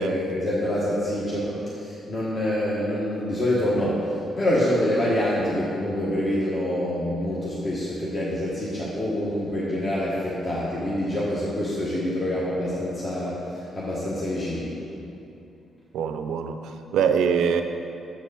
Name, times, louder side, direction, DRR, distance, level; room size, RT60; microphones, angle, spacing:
voice 1, 0.0-4.1 4.4-14.8, left 1 dB, 35° left, -7 dB, 1.2 m, -26 dB
voice 2, 15.9-17.6, right 7 dB, 90° right, 7 dB, 0.4 m, -24 dB
7.3 x 4.6 x 5.5 m, 2.7 s
cardioid pair, 115°, 0 cm